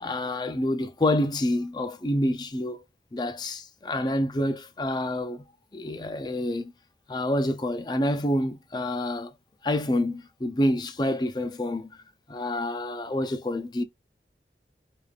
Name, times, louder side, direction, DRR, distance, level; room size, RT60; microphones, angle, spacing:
voice 1, 0.0-2.8 3.1-5.4 5.7-6.7 7.1-9.3 9.6-11.9 12.3-13.8, left 1 dB, 25° left, 0.4 m, -27 dB
4.9 x 2.4 x 2.4 m
head